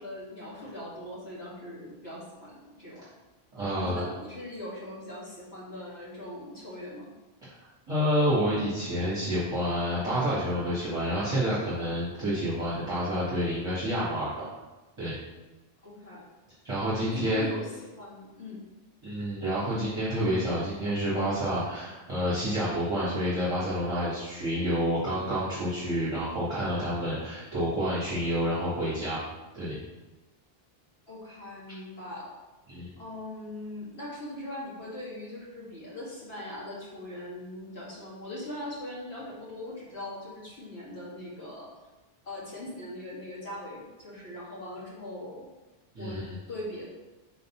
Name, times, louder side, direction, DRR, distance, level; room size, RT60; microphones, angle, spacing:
voice 1, 0.0-3.1 3.8-7.1 15.8-16.2 17.0-18.6 31.1-32.3 33.0-41.7 42.2-45.5 46.0-46.2 46.5-46.8, left 1 dB, 85° left, -7 dB, 2.2 m, -40 dB
voice 2, 3.5-4.1 7.9-14.5 15.0-15.1 16.6-17.5 19.0-29.2 29.5-29.8 32.7-32.9 46.0-46.4, equal, 30° right, -10 dB, 1.7 m, -29 dB
4.5 x 4.0 x 5.7 m, 1.1 s
omnidirectional pair, 1.0 m